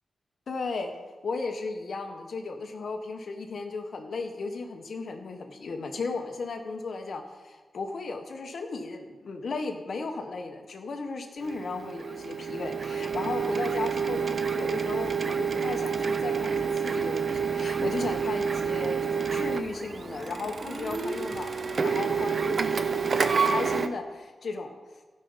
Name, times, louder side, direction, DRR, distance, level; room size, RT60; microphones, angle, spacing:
voice 1, 0.5-0.9 1.2-24.8, left 3 dB, 70° left, 5 dB, 1.3 m, -35 dB
Printer, 11.4-23.9, right 6 dB, 60° right, 0.7 m, -28 dB
15.5 x 5.5 x 5.7 m, 1.3 s
wide cardioid pair, 85°, 0 cm